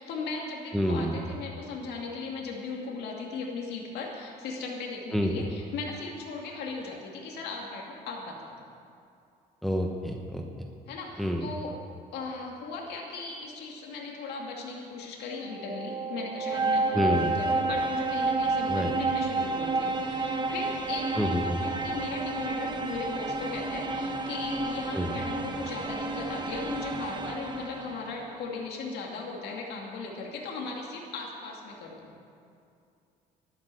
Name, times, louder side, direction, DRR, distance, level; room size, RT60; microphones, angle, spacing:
voice 1, 0.0-8.6 10.9-11.8 12.1-32.1, left 4 dB, 75° left, -1 dB, 2.4 m, -37 dB
voice 2, 0.7-1.2 5.1-5.5 9.6-10.4 11.2-11.5 16.9-17.4 18.7-18.9 21.2-21.6 24.9-25.2, equal, ahead, 1 dB, 1.1 m, -28 dB
sound 1, 15.4-28.2, right 3 dB, 25° right, 1.3 m, -30 dB
12.0 x 11.0 x 7.7 m, 2.5 s
cardioid pair, 110°, 17 cm